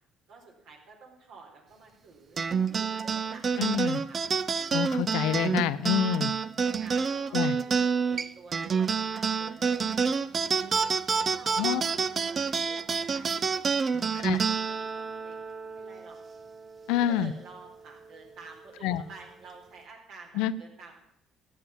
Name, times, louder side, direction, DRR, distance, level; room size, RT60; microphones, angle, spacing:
voice 1, 0.3-4.2 4.6-4.8 6.1-6.3 6.6-10.7 11.1-11.9 12.3-15.4 15.7-16.2 16.9-21.0, right 4 dB, 70° right, 1 dB, 4.3 m, -51 dB
sound 1, 2.4-17.1, right 5 dB, 40° right, 0.7 m, -28 dB
voice 2, 3.6-4.0 4.7-6.3 7.3-7.5 11.6-11.8 14.1-14.4 16.9-17.3 18.8-19.0 20.3-20.5, left 11 dB, 80° left, 14 dB, 0.6 m, -27 dB
14.0 x 8.8 x 7.3 m, 0.80 s
supercardioid pair, 65°, 0 cm